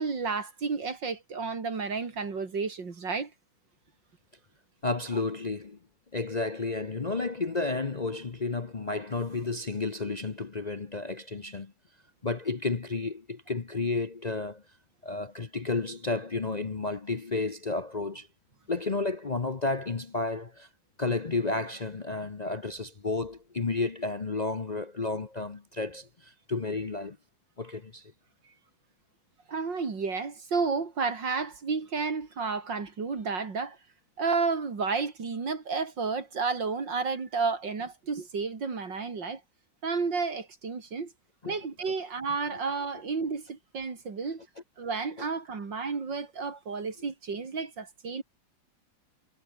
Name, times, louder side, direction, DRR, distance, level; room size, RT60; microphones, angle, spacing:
voice 1, 0.0-3.3 29.5-33.8 34.2-39.4 39.8-41.1 41.5-44.4 44.8-48.2, right 4 dB, 65° right, 3.6 m, -31 dB
voice 2, 4.8-5.8 6.1-11.7 12.2-14.6 15.0-18.3 18.7-20.7 21.0-27.2 27.6-28.1 41.4-41.6 45.2-45.3, left 3 dB, 40° left, 0.6 m, -32 dB
omnidirectional pair, 2.1 m